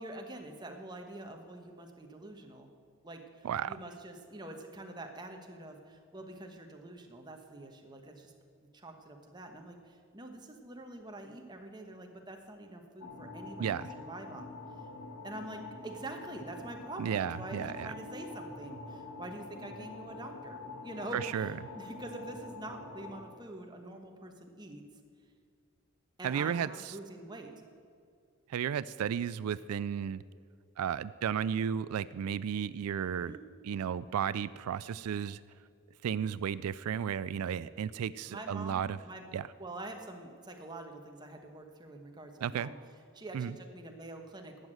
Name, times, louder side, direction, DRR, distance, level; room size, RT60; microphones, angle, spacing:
voice 1, 0.0-2.7 3.0-8.3 8.7-14.5 15.2-24.8 26.2-27.6 33.1-33.4 38.3-39.2 39.6-42.7 43.1-44.7, right 2 dB, 20° right, 3 dB, 1.1 m, -45 dB
sound 1, 13.0-23.2, left 3 dB, 75° left, 1.6 m, -46 dB
voice 2, 17.0-17.9 21.1-21.5 26.2-26.9 28.5-30.2 30.8-33.3 33.6-35.4 36.0-39.0 39.3-39.5 42.4-42.7 43.3-43.6, right 8 dB, 90° right, 17 dB, 0.3 m, -33 dB
12.0 x 8.2 x 7.7 m, 2.4 s
head